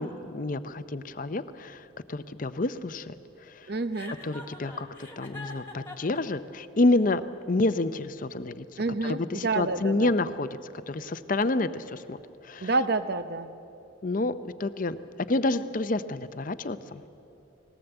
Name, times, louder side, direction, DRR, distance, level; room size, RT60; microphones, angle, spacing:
voice 1, 0.0-3.1 3.4-3.7 4.2-4.9 5.2-10.5 10.9-12.7 14.0-15.0 15.3-17.0, left 2 dB, 40° left, 12 dB, 0.6 m, -29 dB
voice 2, 3.7-4.1 8.8-10.1 12.6-13.5, right 3 dB, 50° right, 12 dB, 0.8 m, -28 dB
Chuckle chortle, 3.9-6.2, left 2 dB, 10° left, 1.9 m, -42 dB
20.0 x 17.5 x 8.0 m, 2.9 s
head